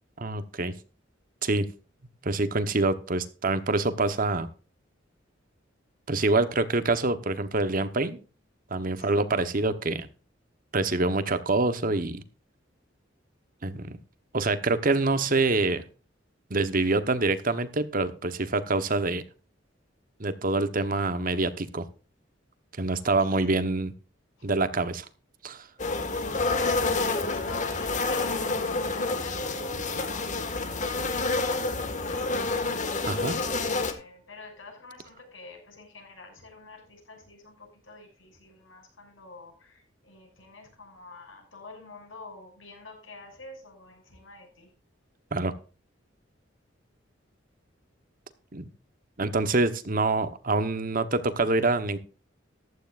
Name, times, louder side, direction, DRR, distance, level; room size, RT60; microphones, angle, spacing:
voice 1, 0.2-0.7 1.4-1.7 2.2-4.5 6.1-8.2 8.7-10.1 10.7-12.2 13.6-14.0 14.3-15.8 16.5-19.2 20.2-21.9 22.8-23.9 24.4-25.0 25.4-25.7 33.1-33.4 45.3-45.5 48.5-48.7 49.2-52.0, right 3 dB, 45° right, 11 dB, 1.1 m, -26 dB
sound 1, 25.8-33.9, left 3 dB, 40° left, 1.8 m, -28 dB
voice 2, 26.9-30.3 31.1-32.8 33.6-44.7, left 3 dB, 85° left, 2 dB, 6.6 m, -47 dB
14.5 x 12.0 x 2.5 m, 0.35 s
head